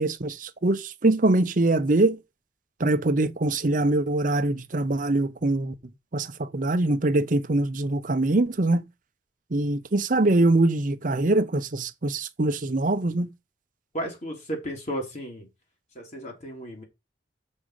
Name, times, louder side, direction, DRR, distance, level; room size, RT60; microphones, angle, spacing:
voice 1, 0.0-2.2 2.8-5.7 6.1-8.9 9.5-13.3, right 2 dB, 45° right, 0.7 m, -23 dB
voice 2, 13.9-15.5 15.9-16.8, equal, 40° left, 3.4 m, -34 dB
6.3 x 5.5 x 6.4 m
head